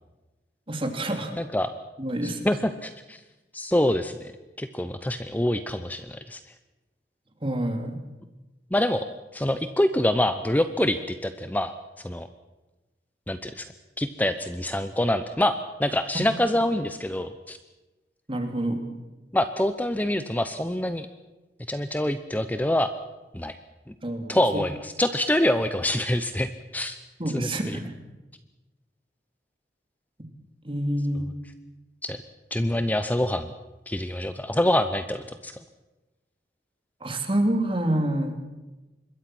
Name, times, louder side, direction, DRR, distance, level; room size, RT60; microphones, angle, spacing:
voice 1, 0.7-1.3 2.0-2.5 7.4-8.0 18.3-18.8 24.0-24.4 27.2-27.9 30.6-31.3 37.0-38.3, right 1 dB, 30° right, 5 dB, 2.9 m, -27 dB
voice 2, 1.4-1.7 2.2-3.2 3.5-4.3 4.6-6.4 8.7-9.1 9.3-11.7 12.0-12.3 13.3-13.7 14.0-17.6 19.3-21.1 21.7-22.9 23.3-23.5 23.9-24.0 24.3-27.0 27.3-27.8 32.0-32.2 32.5-33.5 33.9-35.6, left 1 dB, 10° left, 10 dB, 0.7 m, -26 dB
25.5 x 21.5 x 6.1 m, 1.1 s
head